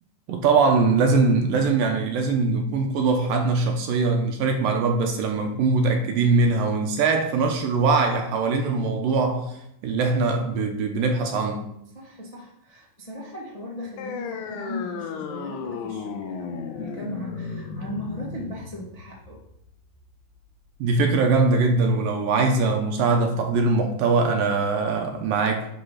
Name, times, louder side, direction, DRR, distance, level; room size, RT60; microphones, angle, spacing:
voice 1, 0.3-9.6 9.8-11.7 20.8-25.7, right 3 dB, 75° right, 3 dB, 2.4 m, -22 dB
voice 2, 11.9-19.4, left 1 dB, 20° left, -4 dB, 1.0 m, -37 dB
sound 1, 14.0-21.0, left 5 dB, 90° left, 2.8 m, -35 dB
10.5 x 5.0 x 5.7 m, 0.78 s
omnidirectional pair, 4.5 m